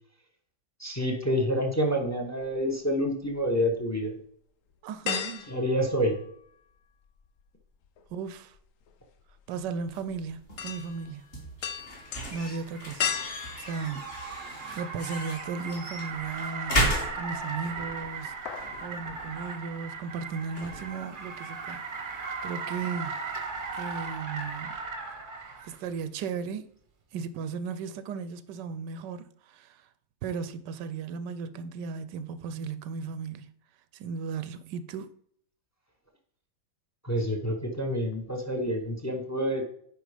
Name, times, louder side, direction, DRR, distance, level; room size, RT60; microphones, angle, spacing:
voice 1, 0.8-4.1 5.5-6.2 37.0-39.7, equal, 15° left, 0.8 m, -28 dB
sound 1, 2.4-3.4 3.9-4.0 5.1-6.8 7.0-15.0 15.4-15.5 16.9-17.5 17.8-18.0 18.2-18.8 19.1-19.2, left 7 dB, 60° left, 0.9 m, -37 dB
voice 2, 4.8-5.5 8.1-8.5 9.5-11.2 12.3-13.1 13.6-16.9 17.1-21.8 22.4-23.1 23.7-24.7 25.6-26.7 27.1-29.8 30.2-33.5 33.9-35.1, right 5 dB, 85° right, 1.3 m, -36 dB
sound 2, 9.9-22.6, equal, 35° left, 2.5 m, -36 dB
Car, 11.9-25.8, right 4 dB, 40° right, 0.9 m, -38 dB
9.3 x 4.2 x 4.9 m
omnidirectional pair, 1.8 m